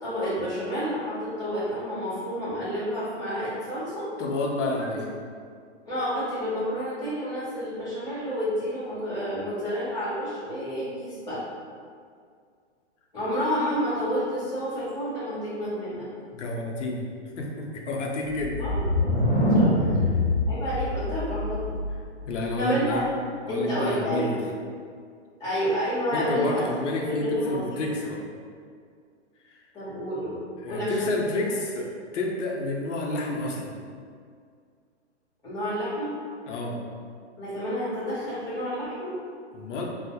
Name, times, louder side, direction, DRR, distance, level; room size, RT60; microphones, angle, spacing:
voice 1, 0.0-4.1 5.8-11.4 13.1-16.1 18.6-18.8 19.5-19.7 20.4-21.8 22.6-23.0 23.5-24.3 25.4-26.6 27.0-27.6 29.7-31.1 35.4-36.1 37.4-39.1, equal, 5° right, -24 dB, 0.3 m, -29 dB
voice 2, 4.2-5.1 16.3-17.1 17.4-18.7 22.2-23.0 23.5-24.4 26.1-28.2 29.4-29.6 30.6-33.7 36.5-36.8 39.5-39.8, left 2 dB, 80° left, -1 dB, 0.6 m, -29 dB
sound 1, 18.3-22.1, left 1 dB, 35° left, 0.8 m, -24 dB
2.2 x 2.0 x 2.7 m, 2.1 s
hypercardioid pair, 150°, 36 cm